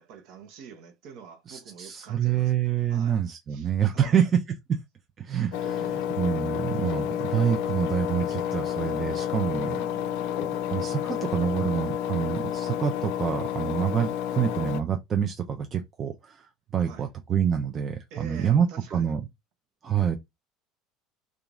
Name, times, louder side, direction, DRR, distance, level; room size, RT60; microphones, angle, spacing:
voice 1, 0.0-2.5 2.9-3.2 3.5-4.3 9.5-10.3 16.8-17.1 18.1-19.1, right 7 dB, 55° right, 0.9 m, -46 dB
voice 2, 1.5-4.8 5.2-9.8 10.7-19.2 19.8-20.2, right 8 dB, 35° right, 0.5 m, -27 dB
Engine, 5.5-14.8, left 9 dB, 60° left, 0.3 m, -30 dB
2.9 x 2.4 x 3.6 m
figure-of-eight pair, 65°, 0 cm